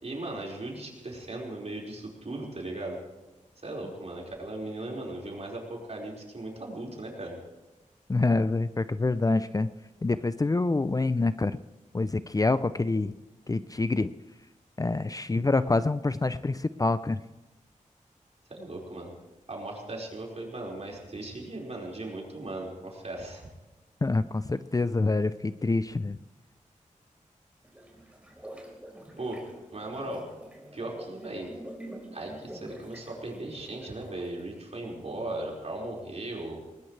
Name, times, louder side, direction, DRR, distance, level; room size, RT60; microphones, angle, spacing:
voice 1, 0.0-3.0 3.6-7.4 18.5-19.1 19.5-23.5 29.2-29.4 29.7-30.3 30.7-31.5 32.1-36.6, right 2 dB, 55° right, -2 dB, 5.0 m, -37 dB
voice 2, 8.1-9.7 10.0-11.6 11.9-13.1 13.5-14.1 14.8-17.2 24.0-26.2, left 3 dB, 25° left, 13 dB, 0.5 m, -26 dB
sound 1, 27.6-34.4, right 1 dB, 10° right, 4.4 m, -46 dB
20.0 x 19.5 x 3.3 m, 1.0 s
wide cardioid pair, 70°, 13 cm